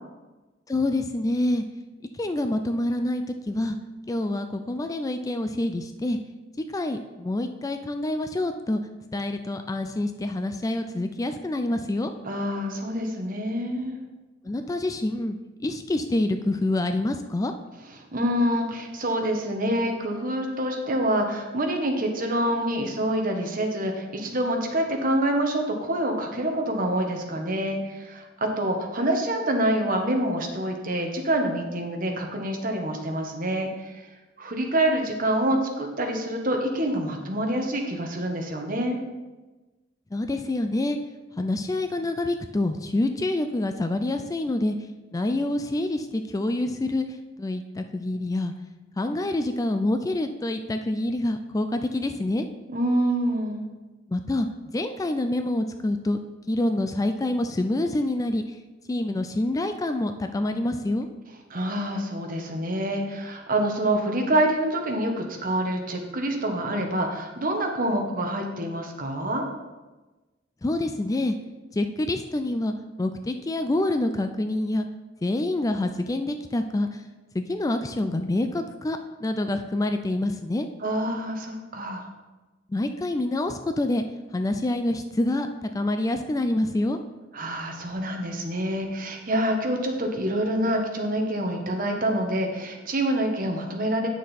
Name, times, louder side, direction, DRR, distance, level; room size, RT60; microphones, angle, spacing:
voice 1, 0.7-1.6 2.1-3.8 4.1-6.2 6.7-8.8 9.1-12.1 14.4-17.5 40.1-41.0 41.4-44.8 45.1-48.5 49.0-52.5 54.1-56.2 56.5-58.6 58.9-61.1 70.6-71.4 71.7-74.9 75.2-77.0 77.3-80.7 82.7-84.0 84.3-87.0, left 1 dB, 20° left, 7 dB, 0.3 m, -27 dB
voice 2, 12.2-14.0 18.1-34.1 34.4-39.0 52.7-53.6 61.5-69.5 80.8-82.1 87.3-94.1, right 1 dB, 45° right, 3 dB, 1.2 m, -26 dB
9.1 x 6.3 x 4.2 m, 1.2 s
head